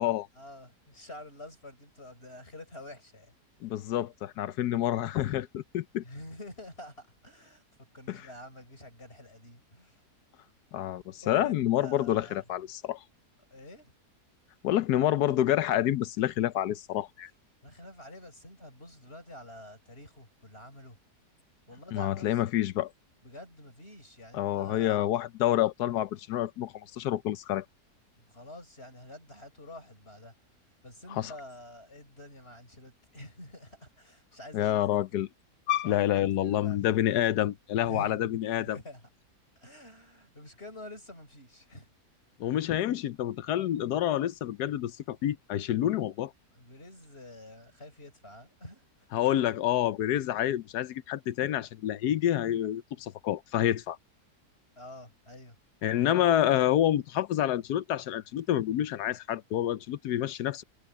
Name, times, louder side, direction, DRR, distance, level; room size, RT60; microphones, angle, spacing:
voice 1, 0.4-3.3 6.0-7.6 7.9-10.0 11.2-12.4 13.5-13.9 17.6-21.0 21.7-22.4 23.2-25.1 28.2-30.3 30.8-35.0 35.8-37.0 37.8-39.1 39.6-41.9 46.5-49.1 54.8-55.6, left 1 dB, 35° left, 5.9 m, -48 dB
voice 2, 3.6-6.0 8.1-8.2 10.7-13.0 14.6-17.3 21.9-22.9 24.3-27.6 31.1-31.3 34.5-35.3 35.7-38.8 42.4-46.3 49.1-54.0 55.8-60.6, left 12 dB, 75° left, 1.2 m, -28 dB
omnidirectional pair, 1.8 m